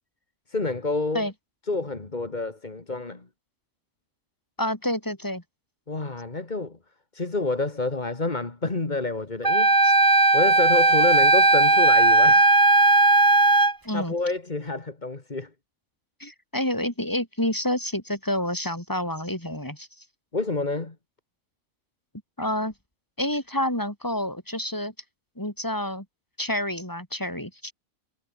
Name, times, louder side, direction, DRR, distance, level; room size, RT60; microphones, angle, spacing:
voice 1, 0.5-1.3 1.7-3.3 5.9-6.8 7.1-9.8 10.3-12.5 13.9-15.5 20.3-21.0, left 3 dB, 30° left, 2.3 m, -28 dB
voice 2, 4.6-5.4 9.8-9.9 13.9-14.1 16.2-19.9 22.4-22.7 23.2-24.9 25.4-26.1 26.4-27.7, left 1 dB, 15° left, 5.4 m, -28 dB
Wind instrument woodwind instrument, 9.4-13.7, right 2 dB, 15° right, 1.0 m, -17 dB
omnidirectional pair, 1.4 m